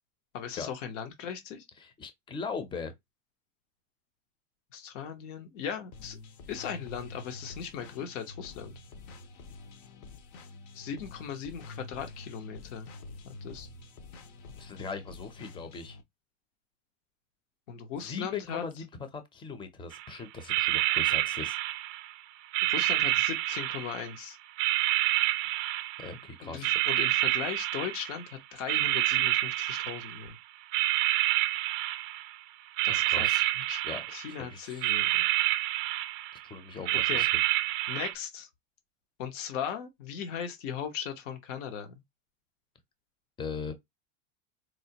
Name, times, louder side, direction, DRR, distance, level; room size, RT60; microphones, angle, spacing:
voice 1, 0.3-1.6 4.7-6.2 6.5-8.7 10.7-12.9 13.2-13.7 17.7-18.6 22.7-24.4 26.4-30.3 32.8-33.4 33.7-33.8 34.1-35.2 37.0-37.2 37.9-38.5 39.2-41.9, left 8 dB, 70° left, 1.2 m, -38 dB
voice 2, 1.8-2.9 14.6-16.0 18.0-21.6 26.0-26.7 32.9-33.5 33.8-34.9 36.5-37.3 43.4-43.7, left 5 dB, 15° left, 0.6 m, -40 dB
sound 1, 5.9-16.0, left 3 dB, 50° left, 0.9 m, -47 dB
sound 2, 19.9-20.1 20.5-22.1 22.5-24.2 24.6-26.2 26.6-28.3 28.7-30.3 30.7-32.4 32.7-34.4 34.8-36.4 36.8-38.1, right 17 dB, 35° right, 0.5 m, -28 dB
4.6 x 2.2 x 2.8 m
supercardioid pair, 135°, 38 cm